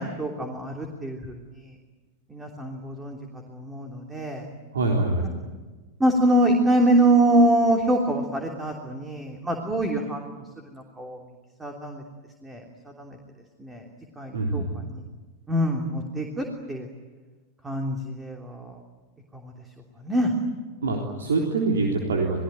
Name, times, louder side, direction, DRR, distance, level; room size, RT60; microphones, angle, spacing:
voice 1, 0.0-1.4 2.3-3.2 3.5-4.5 6.0-10.4 10.7-11.2 11.6-12.0 12.4-12.6 13.0-13.2 13.6-13.8 14.2-14.6 15.5-16.9 17.6-18.7 20.0-20.3, right 1 dB, 10° right, 2 dB, 3.2 m, -24 dB
voice 2, 4.7-5.3 14.3-14.9 20.8-22.4, right 3 dB, 65° right, 0 dB, 3.7 m, -25 dB
29.5 x 20.5 x 9.2 m, 1.3 s
figure-of-eight pair, 90°, 0 cm